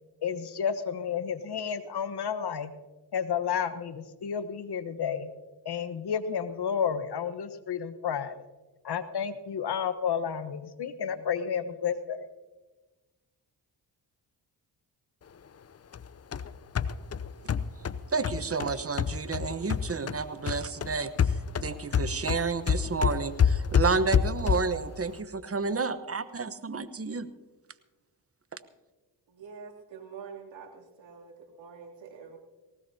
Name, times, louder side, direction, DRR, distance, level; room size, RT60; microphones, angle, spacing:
voice 1, 0.2-2.7 3.1-5.3 5.6-8.3 8.8-12.3, left 7 dB, 60° left, 11 dB, 1.2 m, -31 dB
sound 1, 15.9-20.2 20.5-24.8, left 7 dB, 35° left, 0.6 m, -28 dB
voice 2, 18.1-27.3, right 4 dB, 30° right, 12 dB, 1.1 m, -31 dB
voice 3, 29.3-32.4, right 6 dB, 75° right, -2 dB, 3.0 m, -46 dB
19.5 x 18.0 x 2.8 m, 1.2 s
cardioid pair, 60°, 45 cm